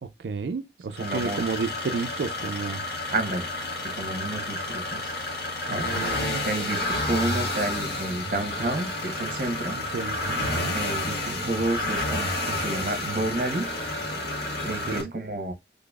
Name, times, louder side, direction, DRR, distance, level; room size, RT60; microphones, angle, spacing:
voice 1, 0.0-2.8 5.7-6.5 9.7-10.8 14.9-15.1, right 4 dB, 75° right, 0.4 m, -32 dB
sound 1, 0.9-15.0, left 2 dB, 65° left, 1.4 m, -30 dB
voice 2, 1.0-1.4 3.1-3.5 4.0-5.1 5.7-6.1 6.4-9.8 10.5-13.6 14.6-15.5, right 2 dB, 50° right, 0.9 m, -30 dB
3.8 x 3.4 x 2.3 m
head